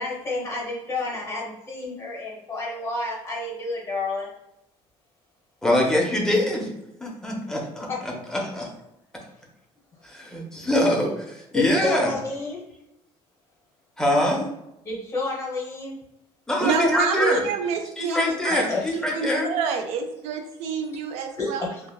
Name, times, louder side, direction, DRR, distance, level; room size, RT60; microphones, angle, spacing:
voice 1, 0.0-4.3 7.9-8.0 11.5-12.6 14.8-16.0 18.5-18.9 20.9-21.8, left 3 dB, 25° left, -4 dB, 0.9 m, -30 dB
voice 2, 5.6-6.7 7.0-8.7 10.0-12.1 14.0-14.5 16.5-17.4 18.0-19.5, left 1 dB, 5° left, -1 dB, 0.5 m, -24 dB
voice 3, 16.6-18.7 18.9-21.7, right 5 dB, 80° right, 6 dB, 0.4 m, -27 dB
3.1 x 2.2 x 2.3 m, 0.85 s
cardioid pair, 150°, 11 cm